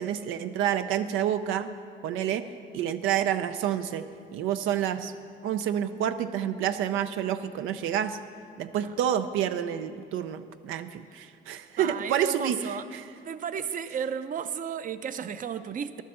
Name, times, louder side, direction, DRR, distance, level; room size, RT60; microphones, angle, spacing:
voice 1, 0.0-1.7 2.0-2.5 2.7-4.1 4.3-5.1 5.4-8.2 8.6-12.6, right 10 dB, 90° right, 9 dB, 0.5 m, -28 dB
voice 2, 11.8-12.9 13.2-16.0, right 7 dB, 40° right, 11 dB, 0.5 m, -33 dB
11.0 x 7.3 x 7.4 m, 2.4 s
cardioid pair, 90°, 20 cm